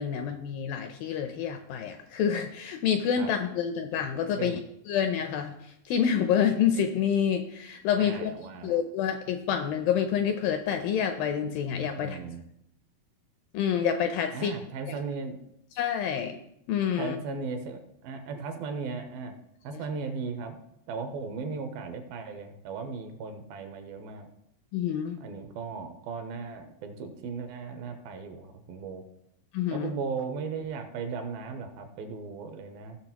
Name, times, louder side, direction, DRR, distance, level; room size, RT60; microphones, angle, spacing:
voice 1, 0.0-4.6 4.9-8.3 8.6-12.2 13.5-14.5 14.9-15.0 15.8-16.4 16.7-17.2 19.7-19.8 24.7-25.2 29.5-29.9, left 8 dB, 80° left, 6 dB, 2.1 m, -28 dB
voice 2, 8.0-8.8 12.0-12.4 14.3-15.4 17.0-19.3 19.6-20.6 20.9-24.3 25.2-29.0 29.7-33.0, right 5 dB, 75° right, 6 dB, 2.5 m, -37 dB
16.5 x 6.4 x 2.9 m, 0.78 s
omnidirectional pair, 4.6 m